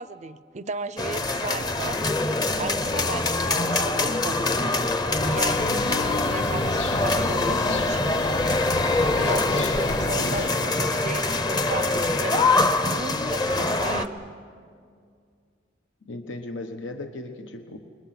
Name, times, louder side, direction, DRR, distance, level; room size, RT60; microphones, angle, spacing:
voice 1, 0.0-2.0 2.6-4.5 5.2-8.0 9.2-14.1, right 4 dB, 40° right, 16 dB, 0.5 m, -35 dB
sound 1, 1.0-14.1, left 2 dB, 20° left, 0.7 m, -24 dB
sound 2, 5.3-10.5, left 4 dB, 65° left, 0.6 m, -35 dB
voice 2, 10.1-10.5 16.0-17.8, left 2 dB, 85° left, 6 dB, 1.2 m, -36 dB
29.0 x 21.0 x 5.9 m, 2.2 s
head